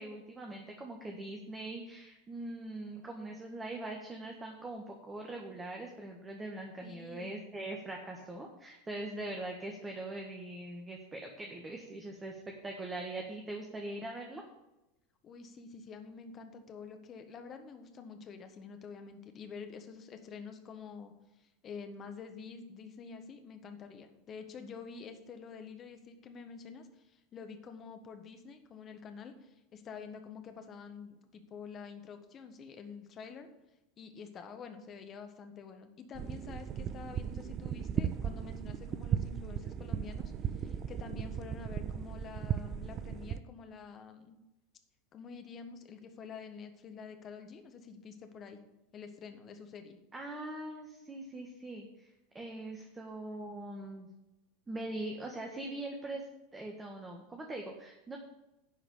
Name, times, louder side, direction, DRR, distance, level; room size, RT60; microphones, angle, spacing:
voice 1, 0.0-14.4 50.1-54.1 54.7-56.2 56.5-58.2, right 2 dB, 20° right, 1 dB, 1.5 m, -42 dB
voice 2, 6.8-7.4 15.2-33.5 34.0-44.4 45.1-48.6 48.9-50.0, left 5 dB, 35° left, 7 dB, 1.4 m, -48 dB
sound 1, 36.1-43.4, right 9 dB, 35° right, 0.5 m, -36 dB
11.0 x 4.9 x 8.2 m, 0.96 s
figure-of-eight pair, 80°, 0 cm